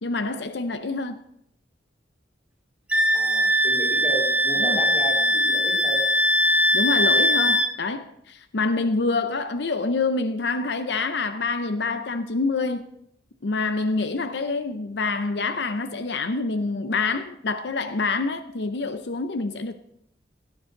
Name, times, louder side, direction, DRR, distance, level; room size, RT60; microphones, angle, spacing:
voice 1, 0.0-1.2 4.6-4.8 6.7-12.9 13.4-19.7, left 3 dB, 65° left, 0.6 m, -26 dB
Wind instrument woodwind instrument, 2.9-7.7, left 1 dB, 5° right, 0.7 m, -21 dB
voice 2, 3.1-6.0 7.2-7.5, right 2 dB, 10° left, 3.5 m, -33 dB
17.0 x 10.0 x 3.9 m
head